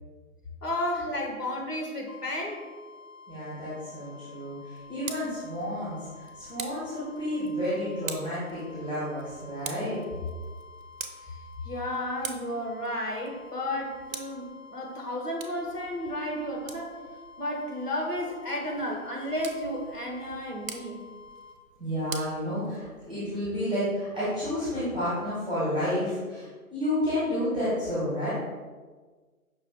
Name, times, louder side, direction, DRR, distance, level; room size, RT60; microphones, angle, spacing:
voice 1, 0.6-2.6 11.3-11.4 11.6-17.0 17.4-21.0, left 1 dB, 90° left, 0 dB, 1.3 m, -32 dB
sound 1, 2.1-21.6, left 4 dB, 60° left, 0.6 m, -50 dB
voice 2, 3.3-10.0 21.8-28.3, equal, 5° right, -12 dB, 0.8 m, -31 dB
Tick, 4.7-23.2, right 5 dB, 60° right, 0.6 m, -45 dB
5.5 x 2.5 x 3.7 m, 1.4 s
figure-of-eight pair, 150°, 45 cm